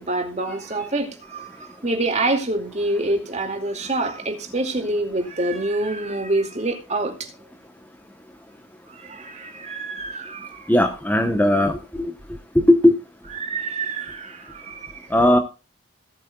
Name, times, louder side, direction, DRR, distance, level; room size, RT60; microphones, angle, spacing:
voice 1, 0.0-7.3 8.9-10.7 13.3-15.1, right 2 dB, 35° right, 2.3 m, -26 dB
voice 2, 10.7-12.1 12.5-12.9 15.1-15.4, left 1 dB, 10° left, 0.9 m, -17 dB
17.5 x 8.3 x 2.3 m
head